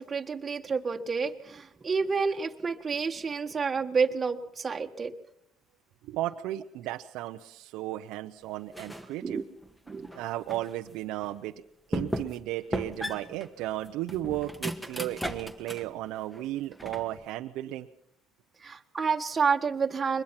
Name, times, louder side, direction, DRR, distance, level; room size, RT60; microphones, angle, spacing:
voice 1, 0.0-5.1 9.2-9.4 9.9-10.1 18.6-20.2, right 5 dB, 30° right, 4 dB, 1.6 m, -29 dB
voice 2, 6.1-9.4 10.1-11.5 11.9-17.9, right 14 dB, 75° right, 6 dB, 0.8 m, -34 dB
sound 1, 8.7-9.2 9.6-10.7 11.2-11.3 11.9-12.5 12.7-15.9 16.3-17.2, equal, 5° left, 1.7 m, -36 dB
23.0 x 21.0 x 5.9 m, 0.72 s
supercardioid pair, 85°, 0 cm